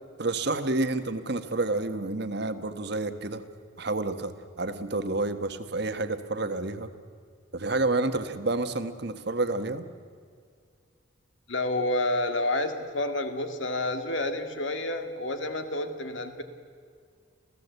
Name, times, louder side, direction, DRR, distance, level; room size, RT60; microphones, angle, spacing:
voice 1, 0.2-3.4 3.8-6.9 7.5-9.9, right 2 dB, 55° right, 10 dB, 1.3 m, -29 dB
voice 2, 11.5-16.4, left 2 dB, 70° left, 7 dB, 2.1 m, -29 dB
27.0 x 16.5 x 8.1 m, 2.1 s
head